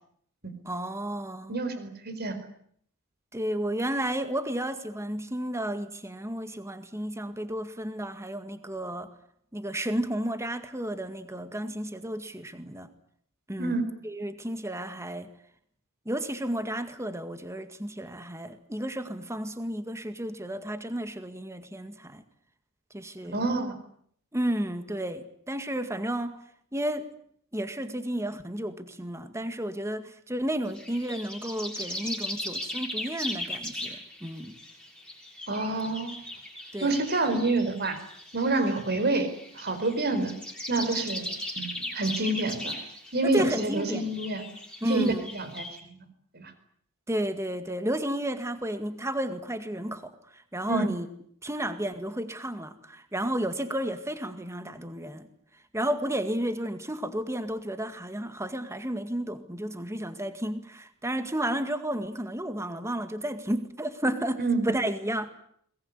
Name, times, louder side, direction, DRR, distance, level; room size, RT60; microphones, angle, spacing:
voice 1, 0.7-1.6 3.3-9.1 9.5-12.9 13.5-15.3 16.1-22.2 22.9-23.5 24.3-26.4 26.7-27.1 27.5-34.5 36.7-37.0 43.2-44.1 44.8-45.3 47.1-51.1 51.4-55.3 55.7-65.3, right 1 dB, 15° right, 9 dB, 2.0 m, -32 dB
voice 2, 1.5-2.4 13.6-13.9 23.3-23.7 35.5-36.2 36.8-38.0 38.3-40.3 40.7-42.8 43.1-44.4 44.9-46.0 46.3-46.5 50.7-50.9 64.4-64.7, right 2 dB, 45° right, 11 dB, 4.7 m, -28 dB
sound 1, 30.7-45.8, left 1 dB, 5° left, 6.8 m, -38 dB
22.5 x 21.0 x 9.8 m, 0.66 s
head